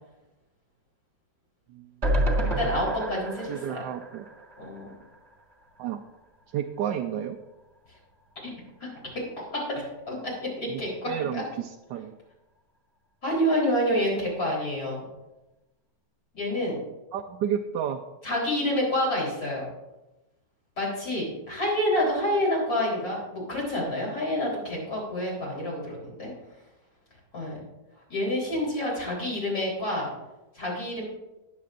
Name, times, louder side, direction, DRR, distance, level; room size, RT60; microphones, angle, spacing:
sound 1, 2.0-5.3 5.6-5.7 6.0-6.1, right 1 dB, 25° right, 1.4 m, -29 dB
voice 1, 2.4-3.8 4.6-4.9 8.4-8.5 8.8-8.9 9.5-10.2 10.4-11.4 13.2-15.0 16.3-16.8 18.2-19.6 20.8-26.3 27.3-27.6 28.1-30.1 30.5-31.0, left 1 dB, 50° left, -4 dB, 4.4 m, -28 dB
voice 2, 3.5-4.3 5.8-6.0 6.5-7.4 10.7-10.8 11.1-12.2 17.1-18.0 28.6-28.7, right 9 dB, 80° right, 4 dB, 1.3 m, -31 dB
20.0 x 7.5 x 2.5 m, 1.0 s
omnidirectional pair, 1.9 m